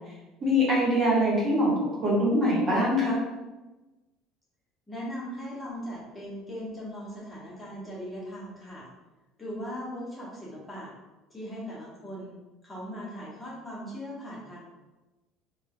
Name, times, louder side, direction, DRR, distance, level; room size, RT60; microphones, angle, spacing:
voice 1, 0.4-1.7 2.0-3.2, equal, 40° right, -6 dB, 1.3 m, -23 dB
voice 2, 4.9-8.9 9.4-10.9 11.3-14.7, equal, 20° left, -6 dB, 1.1 m, -39 dB
3.1 x 2.4 x 2.2 m, 1.1 s
supercardioid pair, 80°, 0 cm